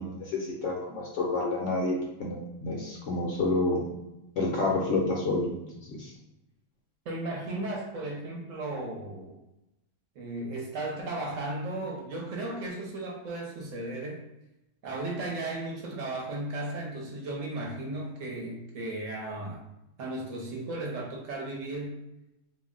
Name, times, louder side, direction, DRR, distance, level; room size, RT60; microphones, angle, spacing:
voice 1, 0.0-1.9 2.2-3.8 4.4-5.6 6.0-6.1, left 2 dB, 65° left, -2 dB, 0.8 m, -29 dB
voice 2, 7.1-9.3 10.2-14.2 14.8-19.6 20.0-22.0, right 2 dB, 65° right, -1 dB, 0.9 m, -35 dB
2.6 x 2.0 x 3.6 m, 0.92 s
omnidirectional pair, 1.6 m